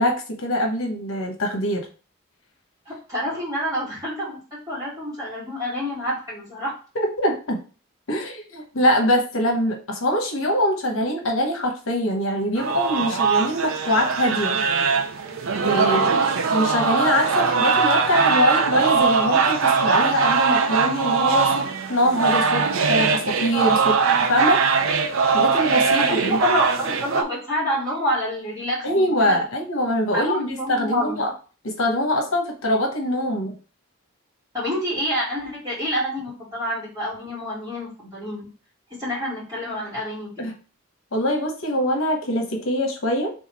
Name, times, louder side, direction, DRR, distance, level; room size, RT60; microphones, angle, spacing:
voice 1, 0.0-1.9 6.9-7.6 8.1-14.6 15.6-16.1 16.5-24.6 25.3-26.4 28.8-31.3 31.6-33.5 40.4-40.5 41.1-43.3, equal, 75° left, 2 dB, 1.0 m, -23 dB
voice 2, 2.9-4.4 4.7-6.7 15.8-16.2 26.0-29.4 30.1-31.2 34.5-38.4 39.0-40.3, left 1 dB, 15° right, -8 dB, 2.6 m, -27 dB
sound 1, 12.6-27.2, right 5 dB, 75° right, 0.6 m, -21 dB
3.6 x 3.5 x 4.2 m, 0.36 s
head